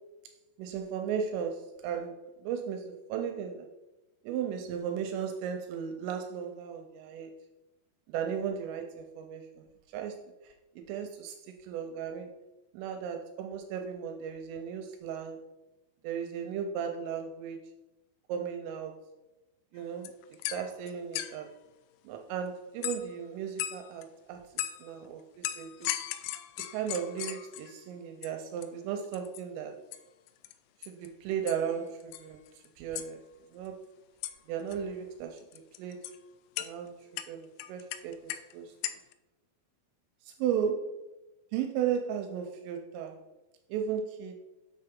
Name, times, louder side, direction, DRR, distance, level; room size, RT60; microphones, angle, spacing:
voice 1, 0.6-3.7 4.2-7.3 8.1-9.7 9.9-12.4 12.7-15.4 16.0-17.7 18.3-19.1 19.7-21.5 22.0-25.9 26.7-29.8 30.8-33.2 33.5-33.8 34.5-36.1 36.6-38.7 40.2-40.9 41.5-43.2 43.7-44.4, right 8 dB, 85° right, 5 dB, 3.1 m, -36 dB
sound 1, 19.8-19.9 20.1-21.5 22.8-23.2 23.6-24.0 24.6-24.9 25.4-27.8 28.2-28.3 28.6-28.7 29.0-29.4 29.9-30.0 30.3-30.5 30.8-31.1 31.5-31.7 32.0-32.7 32.9-33.1 34.2-34.4 34.6-34.8 35.4-36.2 36.6-36.7 37.2-38.5 38.8-39.1, left 13 dB, 90° left, 3.3 m, -37 dB
8.0 x 6.7 x 3.6 m, 1.0 s
omnidirectional pair, 5.9 m